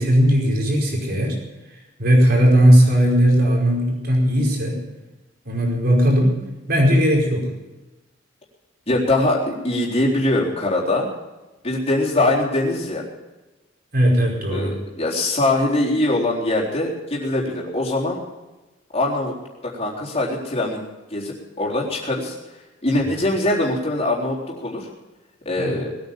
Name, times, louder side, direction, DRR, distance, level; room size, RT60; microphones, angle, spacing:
voice 1, 0.0-1.4 2.0-4.8 5.4-6.4 6.7-7.5 13.9-14.7 25.6-25.7, equal, 55° right, 0 dB, 5.0 m, -17 dB
voice 2, 8.9-11.1 11.6-13.0 14.5-18.2 18.9-19.3 19.6-20.8 21.1-22.3 22.8-24.9 25.5-25.9, left 2 dB, 35° left, -4 dB, 3.9 m, -22 dB
20.5 x 9.5 x 7.3 m, 1.1 s
head